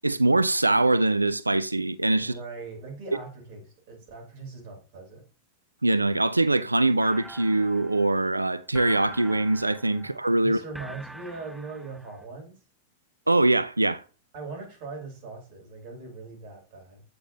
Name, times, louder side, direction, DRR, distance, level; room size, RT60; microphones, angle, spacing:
voice 1, 0.0-2.3 5.8-10.6 13.3-14.0, right 2 dB, 85° right, 0.3 m, -23 dB
voice 2, 2.2-5.3 10.4-12.6 14.3-17.0, right 3 dB, 50° right, 3.4 m, -40 dB
sound 1, 7.0-12.2, right 1 dB, 5° right, 0.8 m, -45 dB
8.3 x 6.6 x 2.7 m
figure-of-eight pair, 90°, 0 cm